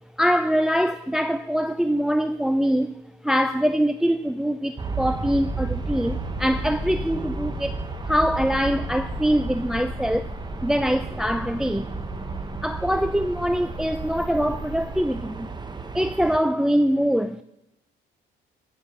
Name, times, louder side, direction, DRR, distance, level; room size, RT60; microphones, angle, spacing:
voice 1, 0.2-10.3 10.6-11.9 12.6-15.5 15.9-17.4, equal, 5° right, 0.4 m, -23 dB
sound 1, 4.8-15.4, left 3 dB, 25° left, 2.9 m, -38 dB
Aircraft, 4.8-16.4, right 4 dB, 20° right, 0.9 m, -33 dB
13.0 x 5.2 x 7.8 m
cardioid pair, 90°, 20 cm